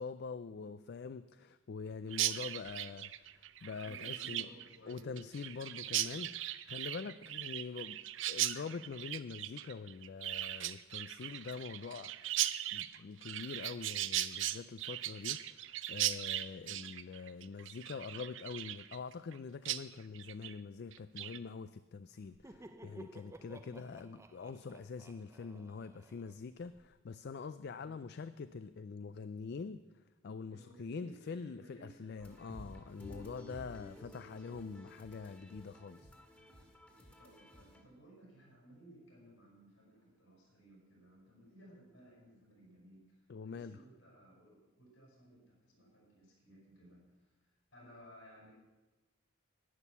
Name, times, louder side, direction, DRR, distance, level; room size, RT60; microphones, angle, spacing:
voice 1, 0.0-4.5 4.9-8.0 8.3-12.1 12.7-29.8 30.2-36.1 43.3-43.8, left 5 dB, 50° left, 13 dB, 0.4 m, -45 dB
Chirp tweet, 2.1-19.4 19.7-19.8 20.1-20.5 20.9-21.4, right 13 dB, 60° right, 0.5 m, -38 dB
voice 2, 3.8-5.2 16.6-16.9 23.6-23.8 27.8-28.1 30.5-32.4 33.5-34.7 36.9-48.5, right 1 dB, 65° left, -2 dB, 5.7 m, -60 dB
Laughter, 22.2-26.9, right 1 dB, 15° right, 0.5 m, -55 dB
sound 1, 32.2-37.8, left 1 dB, 10° left, 1.7 m, -53 dB
11.0 x 10.0 x 7.1 m, 1.1 s
head